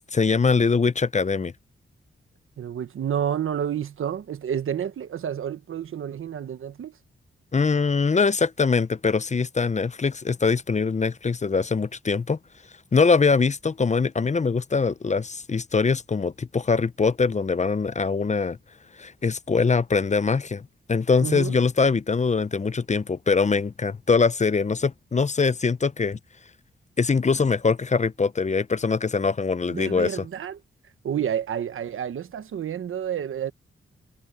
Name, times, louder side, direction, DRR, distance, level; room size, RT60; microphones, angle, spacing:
voice 1, 0.0-1.5 7.5-12.4 12.9-18.6 19.0-26.2 27.0-30.2, left 4 dB, 35° left, 0.7 m, -23 dB
voice 2, 2.6-7.0 21.2-21.6 29.7-33.5, right 9 dB, 85° right, 1.3 m, -30 dB
cardioid pair, 60°, 21 cm